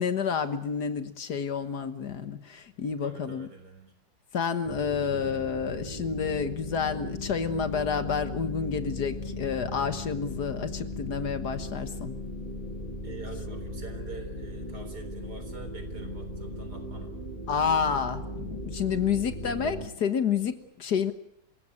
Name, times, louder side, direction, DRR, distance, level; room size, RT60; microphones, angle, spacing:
voice 1, 0.0-3.5 4.3-12.2 17.5-21.1, left 6 dB, 60° left, 10 dB, 1.8 m, -29 dB
voice 2, 3.0-3.9 5.1-5.7 13.0-17.1, right 3 dB, 60° right, 7 dB, 4.4 m, -46 dB
sound 1, 4.6-19.9, left 1 dB, 25° right, 2.7 m, -37 dB
27.0 x 16.5 x 8.5 m, 0.73 s
omnidirectional pair, 2.0 m